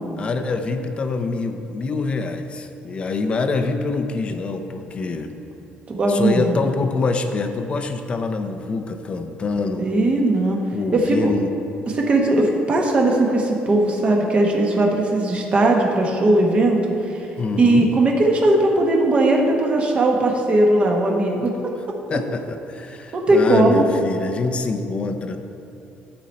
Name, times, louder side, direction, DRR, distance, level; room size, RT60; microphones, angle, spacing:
voice 1, 0.2-5.4 6.1-9.8 10.7-11.5 17.4-17.9 22.1-25.4, left 3 dB, 30° left, 7 dB, 0.5 m, -25 dB
voice 2, 5.9-6.5 9.8-10.6 10.9-11.3 11.9-17.3 17.6-21.5 23.1-23.8, right 2 dB, 30° right, 0 dB, 1.2 m, -18 dB
13.0 x 4.4 x 4.2 m, 2.8 s
cardioid pair, 140°, 4 cm